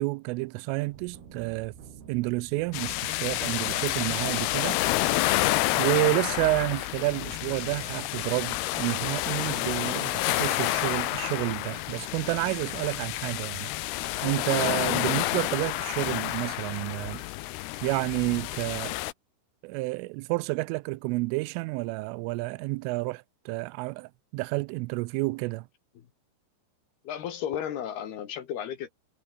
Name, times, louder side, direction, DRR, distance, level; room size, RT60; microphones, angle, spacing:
voice 1, 0.0-1.7 2.1-4.8 5.8-13.7 14.2-17.2 17.8-18.9 19.6-25.7, right 24 dB, 85° right, 3.1 m, -30 dB
sound 1, 0.8-6.1, right 7 dB, 55° right, 5.6 m, -48 dB
sound 2, 2.7-19.1, left 17 dB, 80° left, 2.3 m, -29 dB
voice 2, 27.1-28.9, left 9 dB, 60° left, 3.5 m, -34 dB
omnidirectional pair, 5.7 m